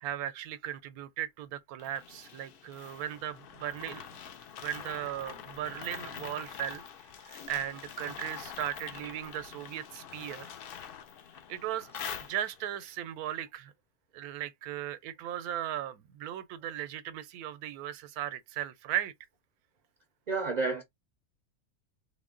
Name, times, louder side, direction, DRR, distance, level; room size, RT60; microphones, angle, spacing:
voice 1, 0.0-4.2 4.6-6.8 7.2-10.5 11.5-11.9 12.2-13.7 14.1-19.1, right 11 dB, 85° right, 1.1 m, -37 dB
sound 1, 1.8-12.8, left 8 dB, 75° left, 0.5 m, -45 dB
voice 2, 20.3-20.8, right 3 dB, 55° right, 0.4 m, -30 dB
3.7 x 2.2 x 3.6 m
omnidirectional pair, 1.5 m